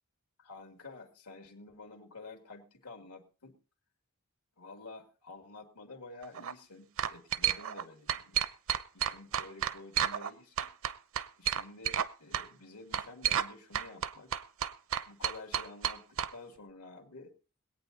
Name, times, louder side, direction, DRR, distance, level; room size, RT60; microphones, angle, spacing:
voice 1, 0.4-3.6 4.6-8.4 8.9-10.7 11.4-14.3 15.1-17.3, left 3 dB, 85° left, 2 dB, 2.5 m, -50 dB
sound 1, 6.2-6.5 7.0-7.8 8.1-10.3 10.6-12.1 12.3-12.5 12.9-13.5 13.7-16.3, right 9 dB, 65° right, 0.7 m, -31 dB
22.0 x 8.8 x 4.0 m, 0.35 s
head